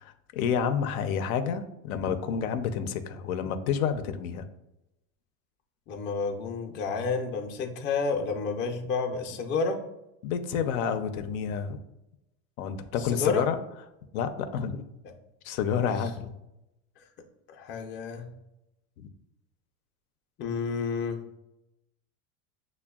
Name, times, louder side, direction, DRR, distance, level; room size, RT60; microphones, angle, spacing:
voice 1, 0.0-4.5 10.2-11.8 12.6-13.6 14.1-14.9 15.4-16.3 19.0-19.1, left 7 dB, 85° left, 9 dB, 0.5 m, -29 dB
voice 2, 5.9-9.8 13.0-13.5 17.0-17.1 17.5-18.3 20.4-21.2, left 4 dB, 30° left, 3 dB, 0.4 m, -30 dB
6.0 x 2.2 x 2.3 m, 0.89 s
supercardioid pair, 125°, 42 cm